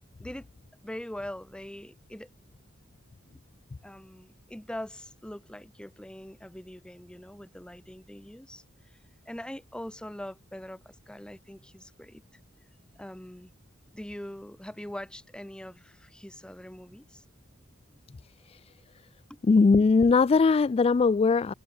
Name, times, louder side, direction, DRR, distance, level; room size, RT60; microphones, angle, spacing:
voice 1, 0.8-2.3 3.8-8.6 9.3-12.2 13.0-13.5 13.9-17.2 19.3-19.4, left 1 dB, 5° left, 0.6 m, -42 dB
voice 2, 19.4-21.5, left 4 dB, 30° left, 0.3 m, -20 dB
head